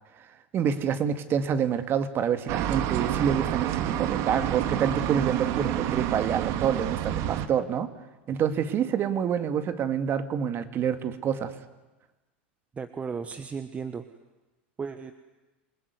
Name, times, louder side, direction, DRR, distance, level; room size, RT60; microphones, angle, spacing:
voice 1, 0.5-7.9 8.3-11.5, right 8 dB, 40° right, 10 dB, 2.3 m, -27 dB
sound 1, 2.5-7.5, right 11 dB, 55° right, 1.8 m, -28 dB
voice 2, 12.7-14.0 14.8-15.1, right 5 dB, 20° right, 10 dB, 1.3 m, -35 dB
27.5 x 19.5 x 9.6 m, 1.1 s
hypercardioid pair, 100°, 6 cm